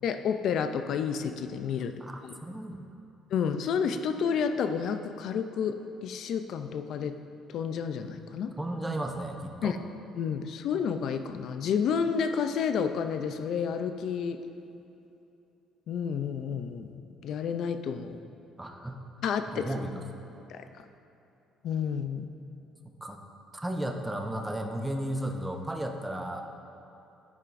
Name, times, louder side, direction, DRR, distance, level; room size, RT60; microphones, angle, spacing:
voice 1, 0.0-1.9 2.2-2.4 3.3-5.7 6.0-7.2 7.5-8.5 9.6-9.8 10.1-14.4 15.9-18.2 19.2-19.7 20.5-20.6 21.6-22.3, left 7 dB, 50° left, 9 dB, 0.4 m, -30 dB
voice 2, 2.0-2.9 8.6-9.8 18.6-19.0 19.5-20.0 23.0-23.2 23.5-26.4, right 1 dB, 5° right, 3 dB, 0.5 m, -34 dB
10.5 x 9.7 x 2.5 m, 2.8 s
cardioid pair, 165°, 0 cm